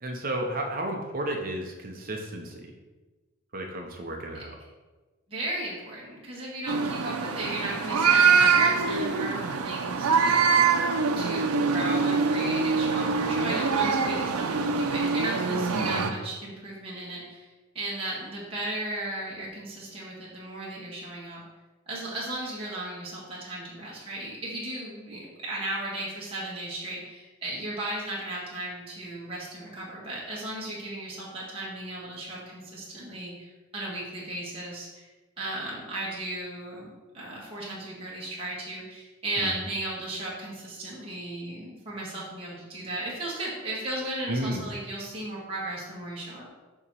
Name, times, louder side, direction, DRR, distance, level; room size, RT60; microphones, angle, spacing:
voice 1, 0.0-2.7 3.5-4.5 15.7-16.1 39.4-39.5 44.3-44.7, right 1 dB, 40° right, 2 dB, 0.8 m, -32 dB
voice 2, 5.3-10.9 11.2-17.5 17.8-21.4 21.9-33.5 33.7-35.0 35.4-46.5, right 1 dB, 25° right, -6 dB, 1.6 m, -35 dB
sound 1, 6.7-16.1, right 5 dB, 90° right, 0.6 m, -24 dB
7.0 x 3.0 x 5.4 m, 1.2 s
head